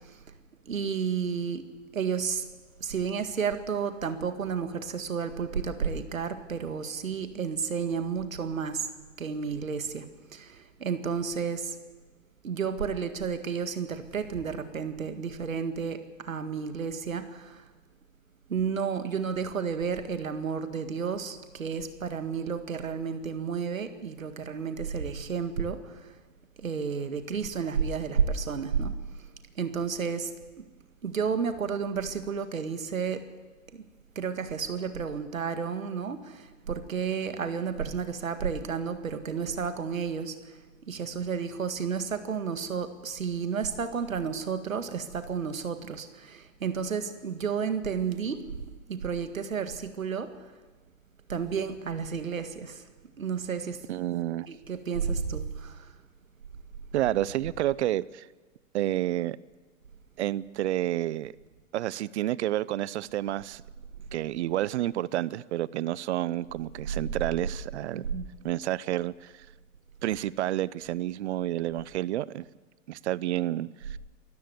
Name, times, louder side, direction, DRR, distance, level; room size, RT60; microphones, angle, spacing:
voice 1, 0.7-1.7 1.9-2.4 2.8-8.9 9.2-10.1 10.3-11.8 12.4-17.6 18.5-25.9 26.6-28.9 29.6-30.3 31.0-33.3 33.7-33.8 34.2-40.4 40.9-48.5 48.9-50.3 51.3-52.8 53.2-53.8 54.5-55.9 67.9-68.3, right 6 dB, 90° right, 1.9 m, -31 dB
voice 2, 53.9-54.5 56.9-58.3 58.7-59.4 60.2-61.3 61.7-63.6 64.1-68.1 68.4-69.5 70.0-72.5 72.9-74.0, right 14 dB, 60° right, 0.7 m, -30 dB
25.0 x 14.0 x 8.0 m
hypercardioid pair, 115°, 39 cm